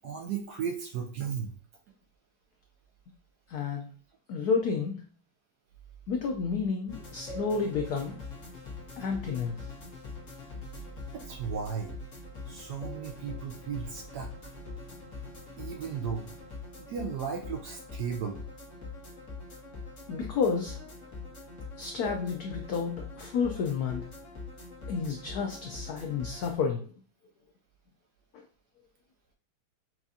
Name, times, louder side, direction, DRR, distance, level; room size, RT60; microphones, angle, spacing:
voice 1, 0.0-1.5 11.1-12.0 12.5-14.3 15.6-16.3 16.8-18.4, right 7 dB, 70° right, 2 dB, 1.0 m, -35 dB
voice 2, 3.5-3.9 4.3-5.0 6.1-8.2 9.0-9.7 20.1-20.8 21.8-24.1 24.9-26.9 28.3-28.4, left 5 dB, 90° left, 3 dB, 0.8 m, -31 dB
sound 1, 6.9-26.5, left 3 dB, 45° left, 1.4 m, -43 dB
5.8 x 2.4 x 2.7 m, 0.43 s
omnidirectional pair, 2.2 m